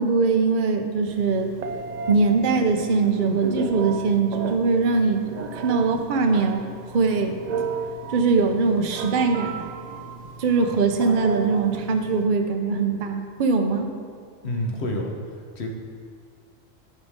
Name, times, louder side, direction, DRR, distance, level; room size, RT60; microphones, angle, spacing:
voice 1, 0.0-1.5 2.1-5.2 5.5-6.6 6.9-7.4 8.1-9.6 10.4-13.9, right 4 dB, 50° right, 5 dB, 0.7 m, -21 dB
Telephone, 1.1-12.2, right 5 dB, 70° right, 0.4 m, -34 dB
voice 2, 14.4-15.7, left 1 dB, 60° left, 1 dB, 1.3 m, -29 dB
13.5 x 5.1 x 3.6 m, 2.1 s
omnidirectional pair, 1.3 m